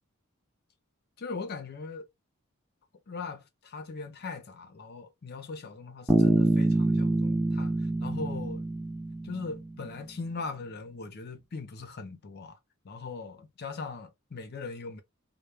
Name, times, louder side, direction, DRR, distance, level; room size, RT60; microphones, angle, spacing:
voice 1, 1.2-2.1 3.1-8.7 9.2-12.6 12.8-15.0, left 4 dB, 45° left, 0.5 m, -40 dB
Bass guitar, 6.1-9.9, right 2 dB, 5° right, 0.4 m, -26 dB
2.1 x 2.1 x 3.2 m
head